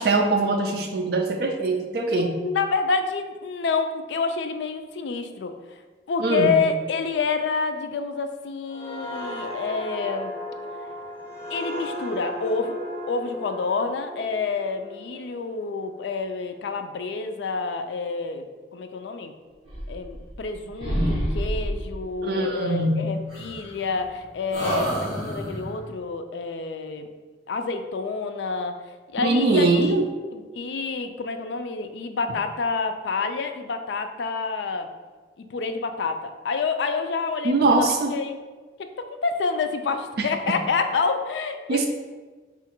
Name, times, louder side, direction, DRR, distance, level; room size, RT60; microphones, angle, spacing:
voice 1, 0.0-2.5 6.2-6.6 22.2-23.2 29.2-30.1 37.4-38.1 40.2-40.6 41.7-41.9, right 3 dB, 65° right, 3 dB, 0.3 m, -22 dB
voice 2, 2.1-5.5 6.1-10.3 11.5-12.8 13.1-18.5 18.7-19.3 19.9-27.1 27.5-28.8 29.1-29.9 30.3-34.9 35.4-38.4 39.0-41.9, left 4 dB, 90° left, 7 dB, 0.4 m, -28 dB
sound 1, 8.7-16.2 16.6-16.8, left 1 dB, 15° left, 0.6 m, -36 dB
sound 2, 19.6-20.5 20.8-22.0 23.3-24.1 24.5-25.8, equal, 30° right, 1.4 m, -28 dB
3.7 x 2.4 x 4.3 m, 1.4 s
head